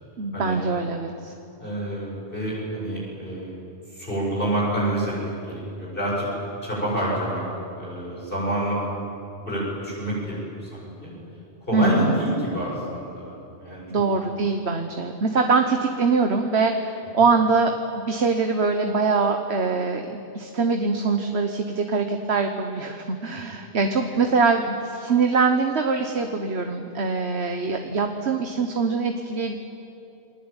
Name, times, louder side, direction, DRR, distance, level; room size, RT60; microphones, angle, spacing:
voice 1, 0.2-1.3 11.7-12.2 13.9-17.7 18.1-29.6, right 4 dB, 70° right, 5 dB, 1.6 m, -23 dB
voice 2, 1.6-3.5 3.9-5.1 5.5-6.3 6.6-7.4 7.8-8.8 9.5-11.1 11.7-13.8, right 1 dB, 50° left, -5 dB, 8.1 m, -27 dB
29.5 x 21.0 x 9.0 m, 2.8 s
omnidirectional pair, 1.1 m